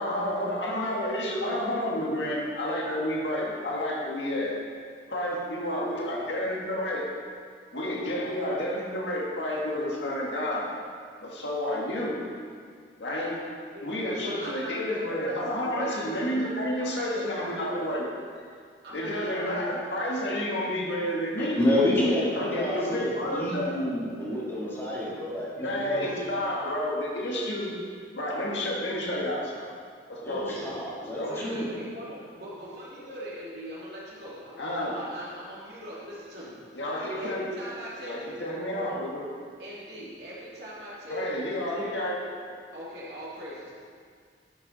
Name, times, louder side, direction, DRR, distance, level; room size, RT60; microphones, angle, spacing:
voice 1, 0.0-4.5 5.1-7.0 7.7-10.7 11.2-12.3 13.0-13.4 13.8-18.1 18.3-18.4 18.9-21.7 22.3-23.7 25.6-27.7 28.1-29.7 30.1-30.6 31.0-31.5 34.6-35.0 36.7-37.5 38.0-39.2 41.1-42.2, left 1 dB, 75° left, -3 dB, 1.7 m, -30 dB
voice 2, 13.7-16.0 16.8-17.9 18.8-19.5 31.2-39.0 39.6-42.3 42.7-43.7, equal, 65° right, -7 dB, 2.6 m, -41 dB
voice 3, 21.4-26.2 30.2-31.7, left 1 dB, 15° left, -8 dB, 2.0 m, -29 dB
10.5 x 6.5 x 4.1 m, 2.1 s
head